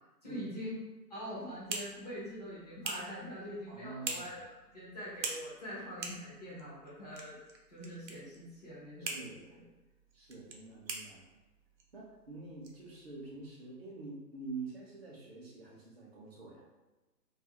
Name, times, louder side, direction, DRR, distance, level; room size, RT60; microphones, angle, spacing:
voice 1, 0.2-0.8 1.1-4.4 4.7-7.4 7.7-9.6, equal, 25° left, -10 dB, 0.5 m, -44 dB
sound 1, 1.1-13.5, right 4 dB, 85° right, 0.7 m, -46 dB
voice 2, 3.7-4.4 9.1-9.6 10.1-11.2 11.9-16.7, right 3 dB, 40° right, -4 dB, 0.6 m, -46 dB
2.3 x 2.1 x 2.7 m, 1.1 s
hypercardioid pair, 165°, 49 cm